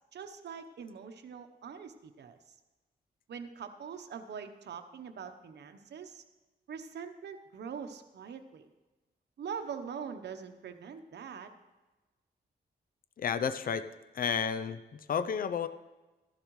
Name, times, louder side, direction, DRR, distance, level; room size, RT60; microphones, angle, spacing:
voice 1, 0.1-2.4 3.3-6.2 6.7-8.6 9.4-11.5, right 6 dB, 75° right, 7 dB, 0.9 m, -43 dB
voice 2, 13.2-13.9 14.1-15.7, left 7 dB, 55° left, 12 dB, 0.6 m, -31 dB
14.5 x 11.5 x 3.2 m, 1.1 s
cardioid pair, 90°, 18 cm